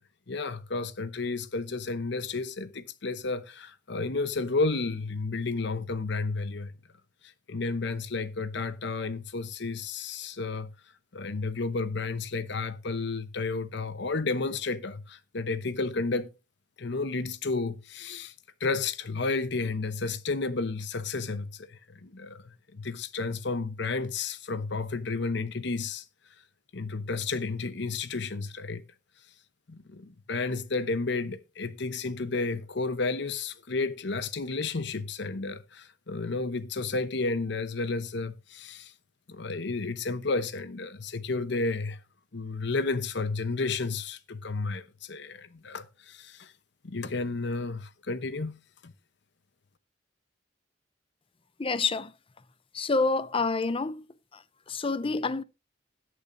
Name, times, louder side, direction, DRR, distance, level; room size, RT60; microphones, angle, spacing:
voice 1, 0.3-6.7 7.5-10.7 11.1-16.3 16.8-18.3 18.6-26.0 26.7-28.8 29.7-38.9 39.3-42.0 42.3-46.5 46.8-48.6 48.8-48.9, left 3 dB, 65° left, 0.8 m, -32 dB
voice 2, 51.6-52.1 52.7-54.1 54.3-55.4, left 3 dB, 30° left, 0.6 m, -28 dB
20.0 x 6.9 x 2.6 m
head